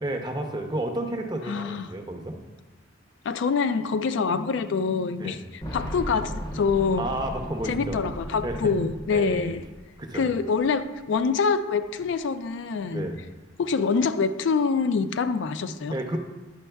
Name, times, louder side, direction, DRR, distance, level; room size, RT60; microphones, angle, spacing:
voice 1, 0.0-2.4 5.2-5.4 7.0-8.0 8.4-8.7 9.1-9.5 10.0-10.3 12.9-13.2 15.9-16.2, right 1 dB, 20° right, 4 dB, 0.6 m, -31 dB
voice 2, 1.5-1.9 3.2-7.1 7.7-9.6 10.1-13.1 13.6-16.2, left 5 dB, 65° left, 10 dB, 0.3 m, -25 dB
Boom, 5.6-10.4 10.6-10.7 11.8-11.9, equal, 20° left, 0.6 m, -36 dB
9.7 x 6.2 x 2.2 m, 1.2 s
head